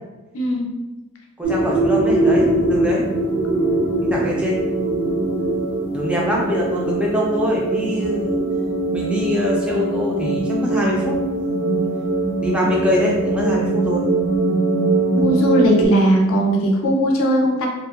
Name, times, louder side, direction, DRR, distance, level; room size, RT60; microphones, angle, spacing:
voice 1, 0.3-0.7 15.1-17.7, equal, 75° left, 0 dB, 0.5 m, -18 dB
voice 2, 1.4-3.0 4.1-4.6 5.9-8.4 8.9-11.2 12.4-14.1, left 1 dB, 5° right, -3 dB, 0.3 m, -23 dB
sound 1, 1.4-15.9, right 2 dB, 85° right, 0.6 m, -21 dB
2.6 x 2.1 x 2.3 m, 1.1 s
head